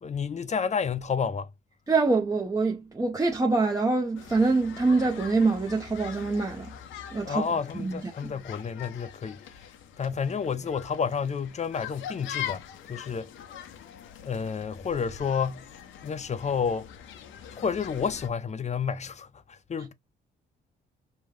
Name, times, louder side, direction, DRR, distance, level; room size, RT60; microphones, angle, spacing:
voice 1, 0.0-1.5 7.2-9.7 10.0-13.3 14.2-15.7 16.0-16.9 17.5-19.9, left 6 dB, 35° left, 0.6 m, -30 dB
voice 2, 1.9-6.7 7.1-7.4 7.8-8.3, right 3 dB, 15° right, 0.7 m, -25 dB
sound 1, 4.2-18.3, left 10 dB, 80° left, 0.7 m, -43 dB
5.3 x 2.2 x 3.2 m
cardioid pair, 90°, 20 cm